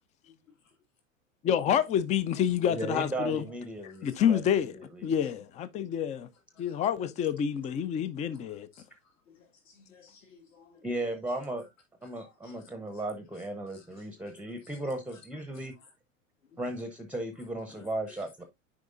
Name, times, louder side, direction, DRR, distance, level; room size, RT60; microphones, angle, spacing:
voice 1, 1.4-3.5 4.0-6.3 6.6-8.7, left 9 dB, 20° left, 0.4 m, -28 dB
voice 2, 2.7-4.4 4.8-5.0 10.8-11.6 12.0-15.7 16.6-18.4, right 1 dB, 5° right, 0.8 m, -36 dB
voice 3, 8.3-8.8 9.3-10.8 12.0-12.8 13.7-14.1 14.5-14.8 15.5-15.7 18.1-18.2, left 5 dB, 70° left, 2.5 m, -59 dB
9.3 x 4.8 x 2.5 m
figure-of-eight pair, 90°, 40 cm